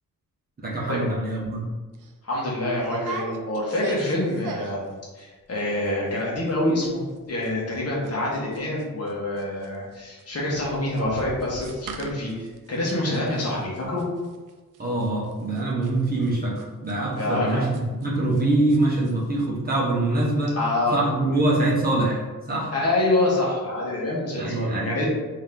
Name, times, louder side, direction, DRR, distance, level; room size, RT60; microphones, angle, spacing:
voice 1, 0.6-1.7 14.8-20.6 20.9-22.7 24.4-25.0, right 2 dB, 25° right, -5 dB, 0.7 m, -24 dB
sound 1, 1.4-1.6 1.9-2.1 2.8-4.9 5.2-5.6 5.9-6.0 6.2-6.5 6.8-18.4 18.7-19.1 19.4-19.5, right 3 dB, 65° right, 0.5 m, -40 dB
voice 2, 2.2-4.8 5.1-7.0 7.3-14.0 17.2-17.6 20.5-21.0 22.7-25.0, left 1 dB, 45° left, -4 dB, 1.1 m, -26 dB
3.5 x 2.8 x 3.4 m, 1.3 s
wide cardioid pair, 150°, 35 cm